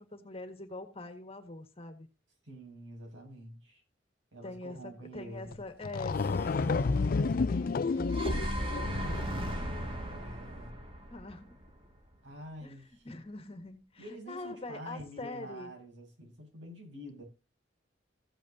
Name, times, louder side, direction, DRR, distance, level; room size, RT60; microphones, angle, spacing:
voice 1, 0.0-2.1 4.4-8.1 9.6-10.0 11.1-11.5 12.6-15.7, left 2 dB, 30° left, 1.8 m, -44 dB
voice 2, 2.4-3.8 4.3-5.6 8.3-10.8 12.2-13.0 14.0-17.2, equal, 85° right, 6.2 m, -48 dB
sound 1, 5.5-5.6 5.8-9.6, left 4 dB, 50° left, 0.4 m, -30 dB
sound 2, 6.1-8.4, left 1 dB, 10° left, 1.3 m, -46 dB
sound 3, 7.9-12.1, equal, 30° right, 2.1 m, -36 dB
15.0 x 8.6 x 2.8 m
head